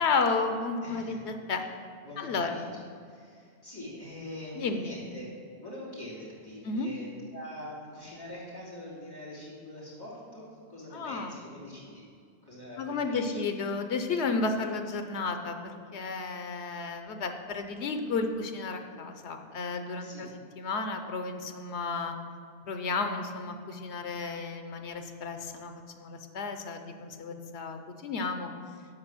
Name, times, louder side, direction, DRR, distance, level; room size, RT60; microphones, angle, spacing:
voice 1, 0.0-1.6 2.2-2.6 4.6-4.9 6.6-6.9 10.9-11.3 12.8-15.6 15.9-20.3 20.6-22.1 22.6-28.5, left 4 dB, 80° left, 6 dB, 1.1 m, -32 dB
voice 2, 0.8-1.3 2.0-5.2 5.5-12.1 12.4-13.4 20.0-20.3, left 1 dB, 20° left, -7 dB, 3.1 m, -44 dB
13.0 x 4.8 x 6.1 m, 2.3 s
omnidirectional pair, 1.1 m